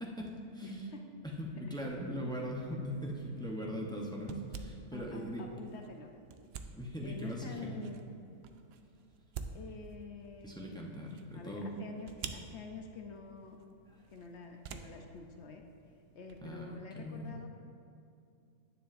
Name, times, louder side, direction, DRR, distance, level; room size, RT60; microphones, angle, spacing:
voice 1, 0.0-0.9 1.4-5.4 6.8-7.9 10.4-11.7 16.4-17.4, equal, 5° left, -1 dB, 0.3 m, -40 dB
voice 2, 0.6-1.1 4.9-6.1 7.0-8.0 9.5-10.8 11.3-13.6 14.1-15.7 16.1-17.6, left 5 dB, 60° left, 3 dB, 0.7 m, -48 dB
sound 1, 2.9-16.5, right 5 dB, 75° right, 0.6 m, -50 dB
10.0 x 9.5 x 2.5 m, 2.5 s
omnidirectional pair, 1.6 m